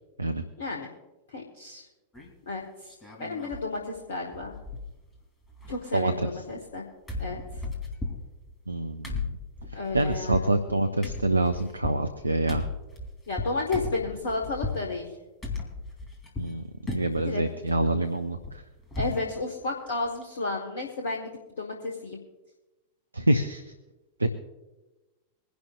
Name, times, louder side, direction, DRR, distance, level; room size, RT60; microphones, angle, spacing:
voice 1, 0.6-0.9 1.3-1.8 2.5-2.9 3.2-4.5 5.7-6.8 7.2-7.6 9.7-10.5 13.3-15.1 17.2-17.4 19.0-21.3 21.6-22.2, left 3 dB, 65° left, 1 dB, 1.5 m, -32 dB
sound 1, 2.1-2.5 2.9-3.7 4.0-4.1 4.3-5.2 5.4-6.8 7.1-14.8 15.4-16.6 16.9-17.3 17.7-19.3 19.6-19.7 20.0-20.2, left 3 dB, 20° left, 3.2 m, -36 dB
voice 2, 5.9-6.3 8.7-9.1 9.9-12.7 16.4-18.6 23.1-23.6 24.2-24.3, right 2 dB, 80° right, 9 dB, 0.6 m, -26 dB
23.5 x 11.5 x 2.5 m, 1.1 s
figure-of-eight pair, 90°, 0 cm